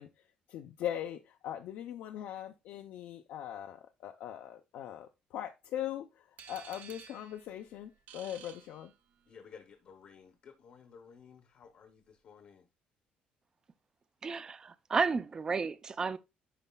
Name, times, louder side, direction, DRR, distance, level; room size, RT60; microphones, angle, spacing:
voice 1, 0.0-8.9, left 11 dB, 80° left, 0.5 m, -41 dB
sound 1, 6.4-9.4, right 8 dB, 70° right, 0.7 m, -53 dB
voice 2, 9.3-12.7, left 6 dB, 45° left, 0.7 m, -55 dB
voice 3, 14.2-16.2, right 5 dB, 25° right, 0.4 m, -32 dB
11.0 x 4.1 x 2.2 m
cardioid pair, 170°, 3 cm